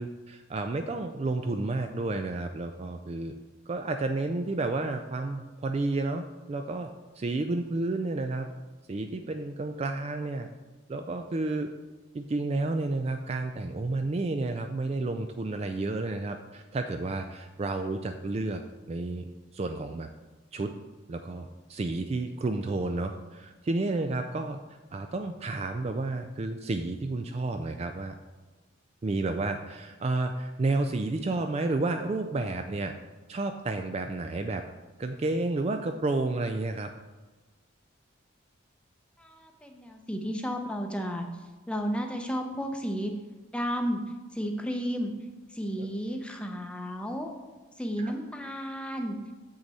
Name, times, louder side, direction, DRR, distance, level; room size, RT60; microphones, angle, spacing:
voice 1, 0.0-3.3 3.7-6.9 7.2-8.5 8.9-10.5 10.9-11.7 12.1-18.6 18.9-19.3 19.5-20.1 20.5-20.7 21.1-24.6 24.9-28.1 29.0-32.9 33.3-34.6 35.0-36.9 45.8-45.9 48.0-48.1, right 2 dB, 30° right, 6 dB, 0.3 m, -31 dB
voice 2, 39.2-41.2 41.7-43.1 43.5-44.0 44.3-45.1 45.5-47.3 47.8-49.2, equal, 5° left, 3 dB, 0.6 m, -32 dB
7.4 x 6.3 x 4.1 m, 1.2 s
head